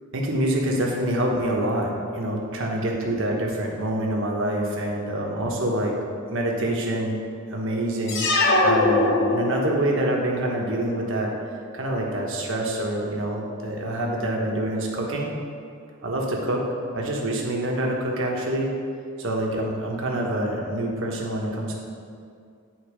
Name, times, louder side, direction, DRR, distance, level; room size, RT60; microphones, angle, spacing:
voice 1, 0.1-6.0 6.3-7.2 7.5-8.3 8.6-11.3 11.7-15.3 16.0-16.7 16.9-18.7 19.2-21.7, right 1 dB, 60° right, -1 dB, 1.1 m, -26 dB
sound 1, 8.1-9.9, left 2 dB, 55° left, 0.8 m, -21 dB
9.0 x 3.9 x 5.0 m, 2.3 s
head